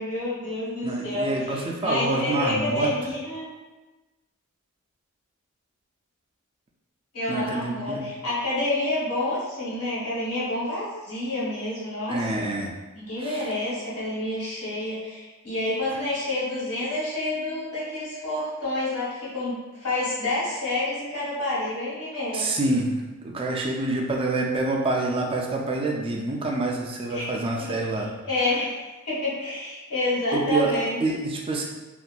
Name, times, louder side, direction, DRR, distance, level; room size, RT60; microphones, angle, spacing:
voice 1, 0.0-3.5 7.1-12.5 12.9-22.5 27.1-27.3 27.6-27.7 28.2-28.7 29.0-31.0, left 1 dB, 85° left, -8 dB, 1.3 m, -28 dB
voice 2, 0.8-2.9 7.3-8.1 12.1-12.7 13.2-13.4 15.9-16.0 22.3-28.1 30.3-30.7 31.0-31.6, right 2 dB, 25° right, 0 dB, 0.3 m, -27 dB
2.7 x 2.4 x 2.2 m, 1.2 s
head